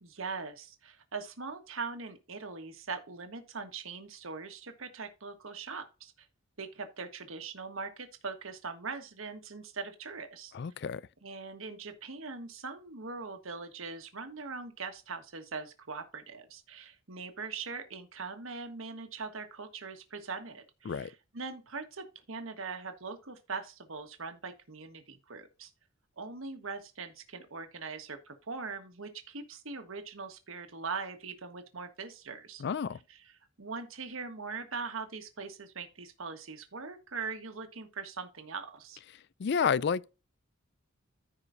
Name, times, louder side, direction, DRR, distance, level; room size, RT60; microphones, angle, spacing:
voice 1, 0.0-6.1 6.6-10.5 11.2-25.7 26.2-32.6 33.1-33.2 33.6-39.0, right 4 dB, 70° right, 1.4 m, -41 dB
voice 2, 10.5-11.0 20.9-21.1 32.6-33.0 39.4-40.1, left 6 dB, 50° left, 0.4 m, -30 dB
14.5 x 4.9 x 2.7 m
head